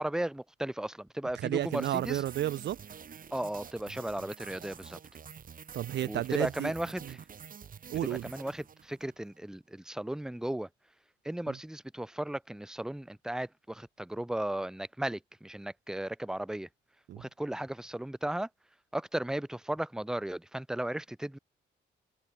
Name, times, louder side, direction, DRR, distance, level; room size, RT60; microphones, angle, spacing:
voice 1, 0.0-2.2 3.3-5.0 6.1-7.2 8.2-10.7 11.2-16.7 17.2-18.5 18.9-21.4, right 1 dB, 5° right, 0.8 m, -35 dB
voice 2, 1.4-2.8 5.7-6.7 7.0-7.1 7.9-8.3 11.5-11.6 17.1-17.2, right 12 dB, 60° right, 0.5 m, -32 dB
sound 1, 1.6-9.2, right 7 dB, 45° right, 1.8 m, -48 dB
cardioid pair, 90°, 20 cm